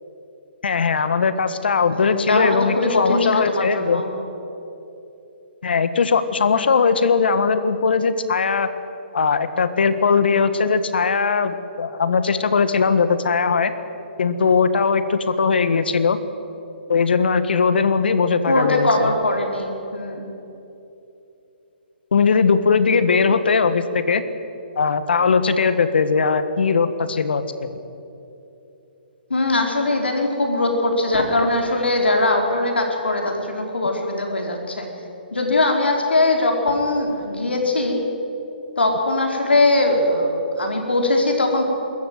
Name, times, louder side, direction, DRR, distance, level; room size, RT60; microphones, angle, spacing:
voice 1, 0.6-4.0 5.6-8.7 9.1-13.7 14.2-16.2 16.9-19.1 22.1-24.2 24.7-27.7, left 5 dB, 70° left, 11 dB, 1.6 m, -19 dB
voice 2, 1.9-4.1 18.5-20.3 29.3-34.9 35.3-38.0 38.8-41.6, left 2 dB, 90° left, 2 dB, 4.3 m, -21 dB
23.0 x 14.0 x 9.4 m, 3.0 s
hypercardioid pair, 140°, 6 cm